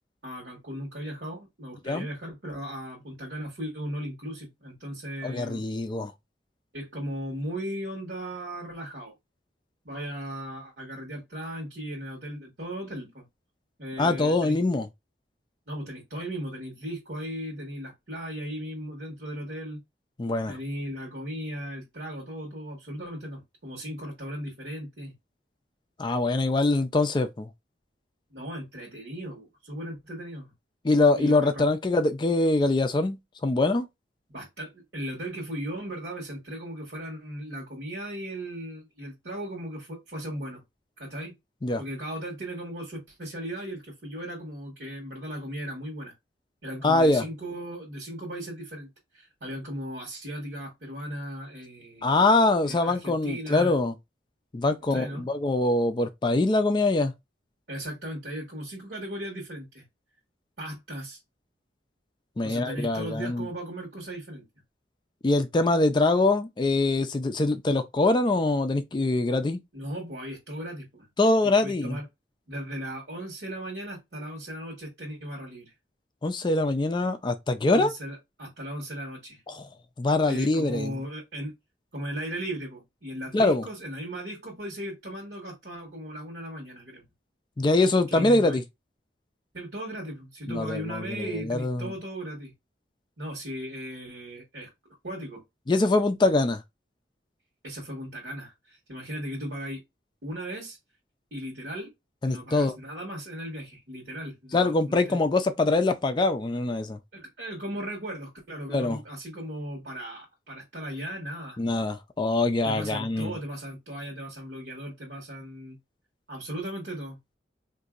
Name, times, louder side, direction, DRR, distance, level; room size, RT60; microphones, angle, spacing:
voice 1, 0.2-5.6 6.7-9.1 9.8-13.3 13.8-14.6 15.7-19.8 20.5-25.1 28.3-30.5 31.1-31.7 34.3-40.6 41.0-41.3 41.8-46.1 46.6-52.0 52.6-53.7 54.9-55.3 57.7-59.8 60.6-61.2 62.4-64.4 69.7-71.1 71.4-72.0 72.5-75.7 77.7-79.4 80.3-81.5 81.9-87.0 88.1-88.6 89.5-92.5 93.2-94.7 95.0-95.4 97.6-99.8 100.2-100.8 101.3-101.9 102.2-105.2 107.1-111.6 112.6-115.8 116.3-117.2, equal, 70° right, 1.3 m, -37 dB
voice 2, 5.2-6.1 14.0-14.9 20.2-20.5 26.0-27.5 30.8-33.2 33.4-33.9 41.6-41.8 46.8-47.2 52.0-53.9 54.5-57.1 62.4-63.5 65.2-69.6 71.2-72.0 76.2-77.9 79.5-79.7 80.0-80.9 83.3-83.6 87.6-88.6 90.5-91.9 95.7-96.6 102.2-102.7 104.5-107.0 108.7-109.0 111.6-113.3, left 2 dB, 25° left, 0.3 m, -24 dB
3.9 x 2.6 x 2.3 m
head